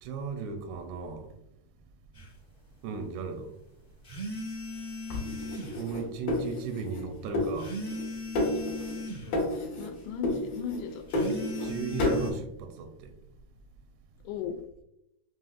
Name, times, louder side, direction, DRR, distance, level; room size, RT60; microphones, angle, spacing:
voice 1, 0.0-1.3 2.8-3.5 5.8-7.8 11.6-13.1, right 5 dB, 80° right, 1.7 m, -36 dB
sound 1, 2.1-2.3 4.0-5.8 7.6-9.3 11.1-12.3, left 1 dB, 35° left, 1.0 m, -37 dB
sound 2, 5.1-7.0 7.3-8.1 8.3-9.0 9.3-9.9 10.2-11.7 12.0-12.3, left 1 dB, 55° left, 1.7 m, -31 dB
voice 2, 6.4-7.1 9.2-11.5 14.2-14.6, left 7 dB, 85° left, 2.1 m, -39 dB
5.6 x 2.5 x 2.4 m
omnidirectional pair, 3.6 m